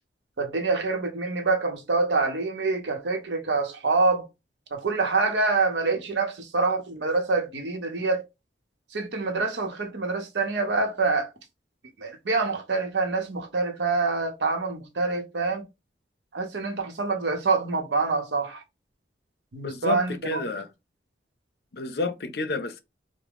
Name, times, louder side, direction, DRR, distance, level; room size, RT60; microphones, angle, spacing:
voice 1, 0.4-4.3 4.7-8.2 8.9-11.3 12.0-15.6 16.3-18.6 19.5-20.4, right 3 dB, 85° right, 0.8 m, -26 dB
voice 2, 19.6-20.7 21.7-22.8, left 3 dB, 65° left, 0.5 m, -30 dB
3.5 x 2.0 x 3.4 m
head